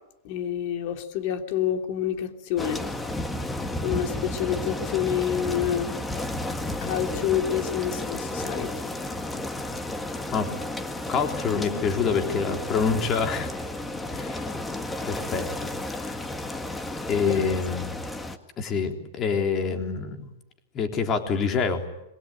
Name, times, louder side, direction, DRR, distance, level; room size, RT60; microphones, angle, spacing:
voice 1, 0.2-2.8 3.8-5.9 6.8-8.7 11.6-11.7 17.2-17.4, left 10 dB, 50° left, 3.2 m, -28 dB
sound 1, 2.6-18.4, left 1 dB, 10° left, 1.8 m, -32 dB
voice 2, 11.1-13.5 14.1-14.5 15.1-16.2 17.1-18.0 18.6-20.3 20.7-21.8, left 5 dB, 25° left, 3.6 m, -26 dB
26.0 x 22.5 x 9.2 m
hypercardioid pair, 140°, 0 cm